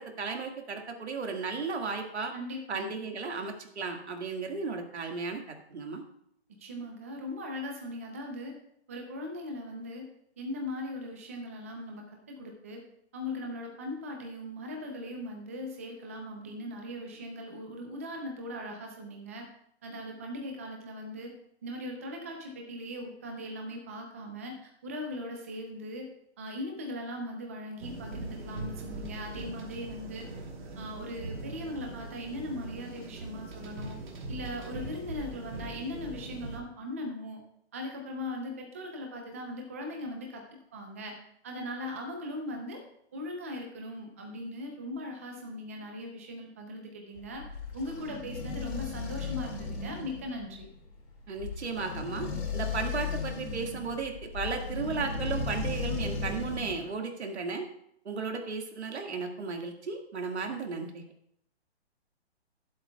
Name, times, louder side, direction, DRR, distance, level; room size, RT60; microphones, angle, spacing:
voice 1, 0.0-2.3 2.7-6.0 51.3-57.7 58.1-61.0, right 4 dB, 90° right, 3 dB, 1.9 m, -35 dB
voice 2, 2.3-3.0 6.6-8.5 8.9-10.1 10.4-12.8 13.1-19.5 19.8-21.3 21.6-26.1 26.4-30.3 30.8-34.0 34.3-37.4 37.7-40.4 40.7-41.1 41.4-42.8 43.1-47.4 47.7-50.7, left 1 dB, 15° right, 2 dB, 0.5 m, -39 dB
sound 1, 27.8-36.6, right 2 dB, 45° right, 1.9 m, -41 dB
sound 2, 47.2-56.9, left 4 dB, 80° left, 3.2 m, -36 dB
20.5 x 7.9 x 2.3 m, 0.72 s
hypercardioid pair, 170°, 32 cm